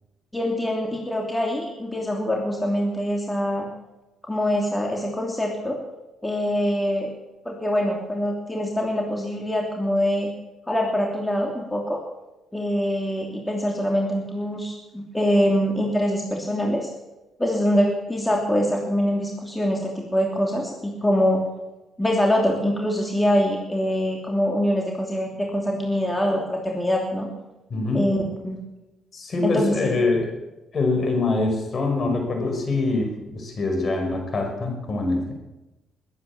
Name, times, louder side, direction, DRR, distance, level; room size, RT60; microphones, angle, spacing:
voice 1, 0.3-3.7 4.2-5.8 6.2-7.1 7.4-10.3 10.7-12.0 12.5-16.9 17.4-21.5 22.0-27.3 27.9-28.2 28.4-28.6 29.4-29.7, equal, 10° left, -1 dB, 3.0 m, -24 dB
voice 2, 27.7-28.0 29.1-30.3 30.7-35.3, left 3 dB, 45° left, 3 dB, 5.2 m, -24 dB
21.0 x 9.6 x 7.2 m, 1.0 s
cardioid pair, 90°, 0 cm